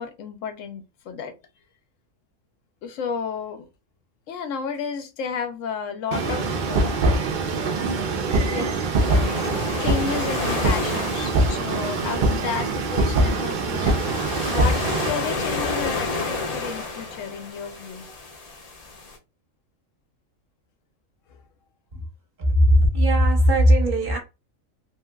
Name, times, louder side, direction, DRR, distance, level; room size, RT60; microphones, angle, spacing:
voice 1, 0.0-1.4 2.8-3.7 4.3-7.0 8.5-8.7 9.1-14.2 14.5-18.1, left 6 dB, 75° left, 1.0 m, -32 dB
sound 1, 6.1-15.1, right 2 dB, 60° right, 0.5 m, -23 dB
sound 2, 9.0-19.2, left 3 dB, 40° left, 0.6 m, -31 dB
voice 2, 22.4-24.2, equal, 45° right, 0.9 m, -18 dB
3.1 x 2.7 x 2.3 m
omnidirectional pair, 1.4 m